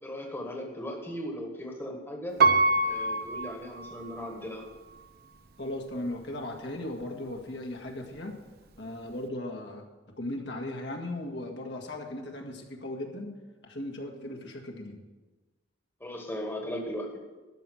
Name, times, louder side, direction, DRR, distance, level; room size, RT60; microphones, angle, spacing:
voice 1, 0.0-2.4 2.8-4.6 16.0-17.2, equal, 10° left, 1 dB, 1.4 m, -37 dB
Piano, 2.4-4.4 4.9-5.0, right 3 dB, 55° right, 0.9 m, -25 dB
voice 2, 5.6-8.4 8.8-9.8 10.2-13.4 13.6-15.0, left 1 dB, 65° left, 1 dB, 1.7 m, -37 dB
13.0 x 6.0 x 7.8 m, 1.2 s
head